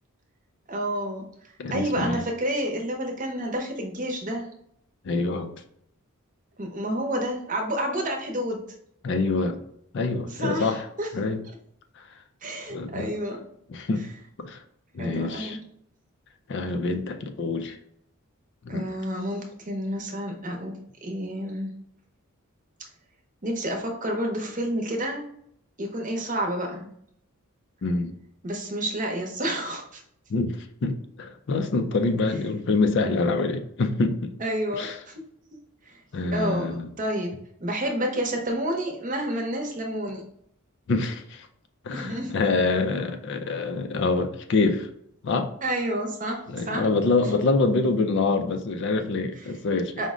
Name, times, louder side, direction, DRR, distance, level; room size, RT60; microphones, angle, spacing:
voice 1, 0.7-1.2 1.7-4.5 6.6-8.6 10.3-11.1 12.4-13.4 15.0-15.6 18.7-20.7 21.0-21.7 23.4-25.3 25.8-26.9 28.4-30.0 34.4-35.2 35.9-36.0 36.3-37.3 37.6-40.2 41.9-42.3 45.6-46.9 50.0-50.1, right 1 dB, 35° right, 2 dB, 0.7 m, -29 dB
voice 2, 1.6-2.2 5.0-5.5 9.0-9.6 9.9-10.9 11.1-11.4 12.0-12.1 12.7-13.1 13.7-14.0 14.4-14.6 14.9-15.6 16.5-17.8 18.6-18.9 27.8-28.1 30.3-34.3 34.7-35.0 36.1-36.9 40.9-41.5 41.8-44.9 45.2-45.5 46.5-50.1, left 3 dB, 50° left, 7 dB, 0.4 m, -26 dB
4.9 x 2.1 x 3.6 m, 0.70 s
head